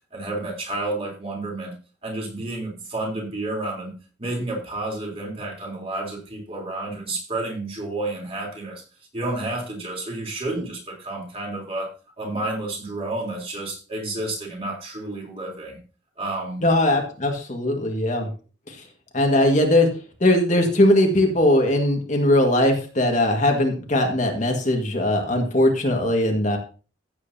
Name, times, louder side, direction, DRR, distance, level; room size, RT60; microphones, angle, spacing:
voice 1, 0.1-1.7 2.0-3.9 4.2-8.8 9.1-11.9 12.2-15.8 16.2-16.6, right 2 dB, 30° right, -2 dB, 3.6 m, -30 dB
voice 2, 16.6-18.3 18.7-18.8 19.1-19.9 20.2-26.6, left 1 dB, 40° left, 2 dB, 1.8 m, -20 dB
15.5 x 8.2 x 2.8 m, 0.35 s
head